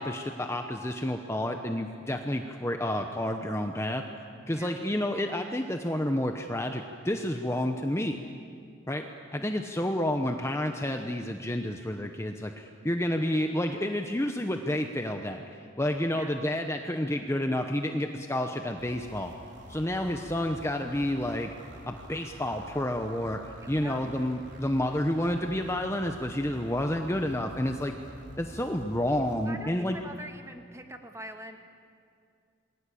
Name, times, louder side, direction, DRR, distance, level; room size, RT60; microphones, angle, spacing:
voice 1, 0.0-4.0 4.5-8.2 8.9-9.1 9.3-19.3 19.7-21.5 21.9-27.9 28.4-30.0, left 1 dB, 15° left, 5 dB, 0.9 m, -30 dB
voice 2, 4.5-4.8 16.1-16.4 23.6-24.2 29.4-31.6, right 1 dB, 15° right, 5 dB, 1.8 m, -44 dB
sound 1, 18.8-29.5, right 1 dB, 60° right, 4.4 m, -48 dB
28.0 x 21.5 x 8.6 m, 2.3 s
head